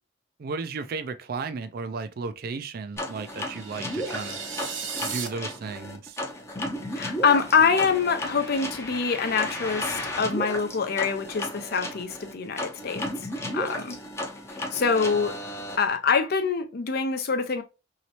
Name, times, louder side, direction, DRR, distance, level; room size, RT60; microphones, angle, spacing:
voice 1, 0.4-4.4 5.0-6.2, right 4 dB, 50° right, 0.4 m, -34 dB
sound 1, 3.0-15.8, left 1 dB, 15° left, 0.6 m, -34 dB
sound 2, 3.3-5.3, right 6 dB, 70° right, 0.8 m, -36 dB
voice 2, 6.9-13.0 13.5-14.0 14.7-15.4 15.8-17.6, left 5 dB, 55° left, 0.6 m, -25 dB
3.1 x 2.8 x 2.8 m
head